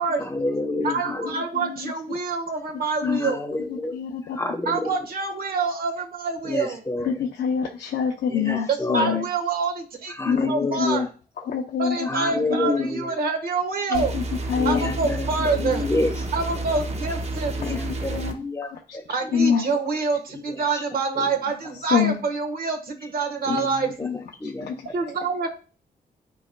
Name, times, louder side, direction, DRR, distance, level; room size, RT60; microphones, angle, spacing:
voice 1, 0.2-1.4 3.0-4.0 4.3-4.9 6.4-7.1 8.3-9.2 10.2-11.0 12.1-13.1 14.6-16.3 17.5-19.3 20.5-20.8 21.2-21.3 23.4-24.1 24.4-24.8, left 2 dB, 15° left, 4 dB, 1.1 m, -29 dB
voice 2, 0.8-3.4 4.7-6.8 8.7-11.0 11.8-14.1 14.6-15.9 16.3-17.5 19.1-23.9 24.9-25.5, right 4 dB, 60° right, 5 dB, 1.3 m, -26 dB
voice 3, 1.5-1.9 3.0-3.2 3.9-4.4 7.0-9.3 10.2-10.5 10.8-11.1 11.4-12.1 12.6-12.7 13.9-14.2 14.5-14.9 15.6-15.8 17.6-17.8 18.1-18.4 18.7-19.0 19.3-19.6 21.9-22.2 23.5-23.7 24.0-24.2 24.4-24.8, left 7 dB, 85° left, 1 dB, 0.7 m, -25 dB
sound 1, 13.9-18.3, right 2 dB, 40° right, 0.8 m, -30 dB
11.5 x 4.2 x 2.2 m, 0.37 s
cardioid pair, 115°, 17 cm